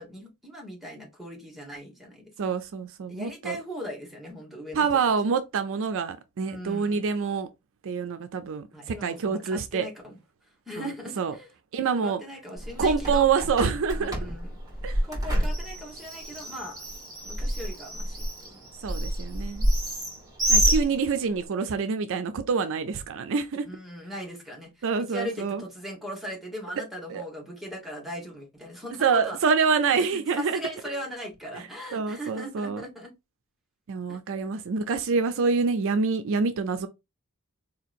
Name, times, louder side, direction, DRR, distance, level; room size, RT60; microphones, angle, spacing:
voice 1, 0.0-2.5 3.1-4.9 6.4-7.1 8.7-10.2 10.7-11.5 12.0-13.3 14.0-14.6 15.0-16.8 17.2-18.6 23.6-29.4 29.9-33.1 34.1-34.4, equal, ahead, 1.2 m, -39 dB
voice 2, 2.4-3.6 4.7-7.5 7.8-9.9 10.8-10.9 11.2-11.3 11.7-12.2 12.8-14.3 14.8-15.0 18.8-19.7 20.5-23.7 24.8-25.6 27.1-27.2 29.0-30.6 31.5-31.6 31.9-32.8 33.9-36.9, right 5 dB, 60° right, 0.4 m, -26 dB
Bird, 12.6-21.5, right 1 dB, 15° right, 1.5 m, -28 dB
4.2 x 2.8 x 2.4 m
head